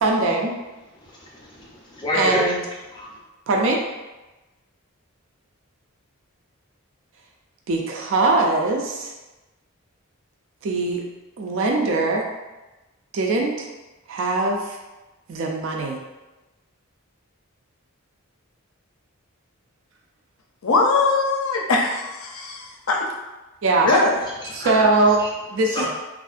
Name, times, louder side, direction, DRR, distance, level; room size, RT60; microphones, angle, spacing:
voice 1, 0.0-0.5 2.1-2.6 3.5-3.8 7.7-9.1 10.6-11.0 11.4-12.2 13.1-13.7 14.1-14.8 15.3-16.0 23.6-23.9 24.5-25.2 25.5-25.9, right 3 dB, 60° right, 0 dB, 0.3 m, -21 dB
voice 2, 1.0-2.4 2.9-3.1 23.9-24.0 24.6-24.9 25.2-25.3 25.7-25.9, left 1 dB, 20° left, -5 dB, 0.4 m, -27 dB
voice 3, 20.6-23.1 23.8-24.2, left 3 dB, 70° left, 0 dB, 0.5 m, -21 dB
3.5 x 2.5 x 2.4 m, 1.1 s
head